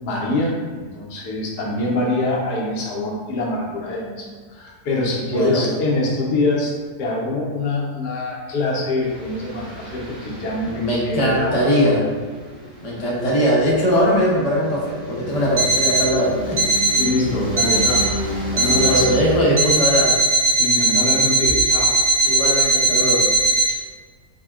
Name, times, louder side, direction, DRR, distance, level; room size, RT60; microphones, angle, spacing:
voice 1, 0.0-6.7 7.0-11.5 17.0-18.2 18.5-19.1 20.6-22.0, left 2 dB, 90° left, -3 dB, 1.3 m, -24 dB
voice 2, 5.3-5.7 10.7-12.0 12.8-16.7 18.5-20.2 22.2-23.2, equal, 50° left, -5 dB, 0.4 m, -20 dB
sound 1, 9.0-19.4, right 1 dB, 45° right, 1.4 m, -31 dB
Alarm, 15.6-16.1 16.6-17.1 17.6-18.1 18.6-19.1 19.6-23.7, right 2 dB, 75° right, 0.4 m, -18 dB
4.1 x 2.1 x 2.3 m, 1.5 s
omnidirectional pair, 1.7 m